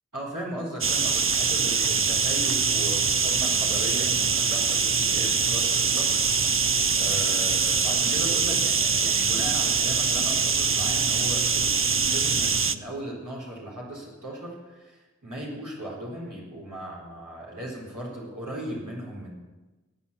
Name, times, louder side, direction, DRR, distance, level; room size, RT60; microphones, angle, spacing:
voice 1, 0.1-19.3, right 1 dB, 90° right, -5 dB, 4.0 m, -37 dB
sound 1, 0.8-12.8, right 5 dB, 45° right, 0.5 m, -23 dB
14.5 x 8.5 x 6.8 m, 1.2 s
wide cardioid pair, 40°, 30 cm